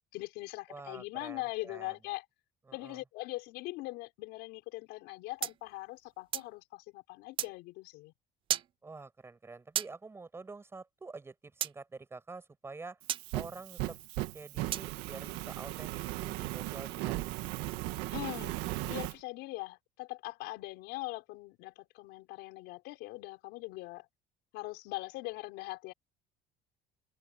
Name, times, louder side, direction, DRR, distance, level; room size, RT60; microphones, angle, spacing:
voice 1, 0.1-2.3 2.7-8.1 18.1-24.1 24.5-25.9, left 20 dB, 80° left, 5.2 m, -41 dB
voice 2, 0.7-1.9 2.7-3.0 8.8-13.0 13.3-17.5, right 3 dB, 15° right, 7.8 m, -47 dB
sound 1, 5.4-6.5 7.4-7.5 8.5-8.7 9.8-9.9 11.6-11.7 13.1-13.2 14.7-14.9, right 11 dB, 30° right, 0.3 m, -34 dB
Fire, 13.0-19.1, right 18 dB, 90° right, 1.6 m, -37 dB
open air
cardioid pair, 160°, 17 cm